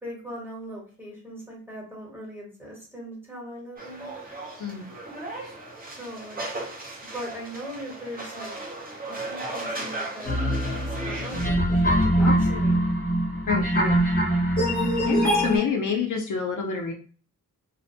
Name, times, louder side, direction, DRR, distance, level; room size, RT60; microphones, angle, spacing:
voice 1, 0.0-4.1 6.0-6.4 7.1-8.5 9.1-12.8, equal, 5° right, -4 dB, 1.0 m, -40 dB
sound 1, 3.8-11.5, right 2 dB, 25° right, 0.5 m, -36 dB
sound 2, 10.3-15.6, equal, 25° left, 0.7 m, -23 dB
voice 2, 12.2-12.6 13.5-14.0 15.0-16.9, left 6 dB, 60° left, 1 dB, 0.5 m, -28 dB
2.5 x 2.1 x 2.6 m, 0.41 s
wide cardioid pair, 180°, 35 cm